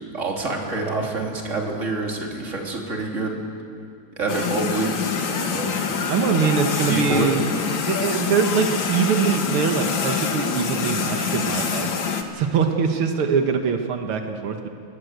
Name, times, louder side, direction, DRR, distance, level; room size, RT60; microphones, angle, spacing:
voice 1, 0.1-3.4 4.2-4.9 5.4-5.8 6.9-7.3, right 3 dB, 35° right, 0 dB, 3.4 m, -27 dB
sound 1, 4.3-12.2, left 6 dB, 65° left, 2.3 m, -25 dB
voice 2, 6.1-7.5 7.9-11.9 12.3-14.7, right 6 dB, 85° right, 5 dB, 2.2 m, -23 dB
28.5 x 20.5 x 8.1 m, 2.4 s
omnidirectional pair, 2.3 m